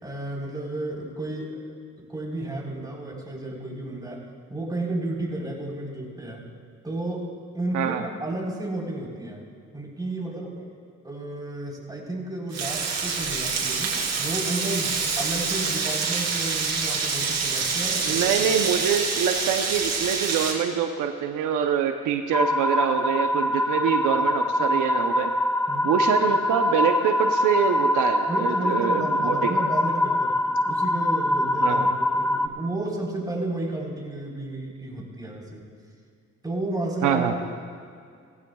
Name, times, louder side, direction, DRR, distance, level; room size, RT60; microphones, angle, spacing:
voice 1, 0.0-4.2 4.5-6.5 6.8-7.3 7.5-9.4 9.7-10.7 11.0-18.7 24.2-24.3 25.7-25.9 28.3-30.4 30.7-35.7 36.4-37.4, right 2 dB, 15° right, -2 dB, 3.9 m, -32 dB
voice 2, 7.7-8.1 18.0-25.3 25.8-29.6 31.6-31.9 37.0-37.3, right 8 dB, 90° right, 5 dB, 0.8 m, -25 dB
Frying (food), 12.5-20.5, right 4 dB, 60° right, 3.0 m, -26 dB
sound 1, 22.3-32.5, left 1 dB, 5° left, 0.4 m, -24 dB
19.0 x 15.5 x 2.3 m, 2.2 s
cardioid pair, 75°, 30 cm